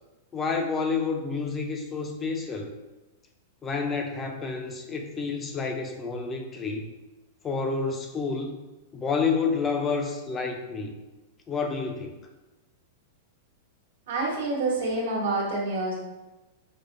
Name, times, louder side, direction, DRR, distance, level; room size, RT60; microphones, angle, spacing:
voice 1, 0.3-2.7 3.6-6.9 7.4-8.5 8.9-11.0 11.5-12.1, left 4 dB, 20° left, 3 dB, 0.4 m, -29 dB
voice 2, 14.1-15.9, right 2 dB, 80° right, -3 dB, 1.1 m, -27 dB
4.9 x 2.1 x 2.5 m, 1.1 s
supercardioid pair, 150°, 0 cm